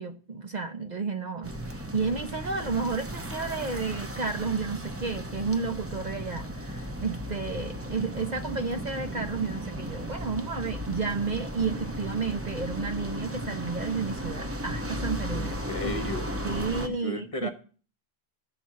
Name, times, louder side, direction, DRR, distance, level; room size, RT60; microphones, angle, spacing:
voice 1, 0.0-15.9 16.4-17.5, right 4 dB, 45° right, 0.8 m, -32 dB
sound 1, 1.4-16.9, equal, 15° right, 0.7 m, -35 dB
voice 2, 15.3-16.3 16.9-17.5, left 1 dB, 35° left, 1.0 m, -34 dB
12.0 x 4.3 x 7.4 m
omnidirectional pair, 1.1 m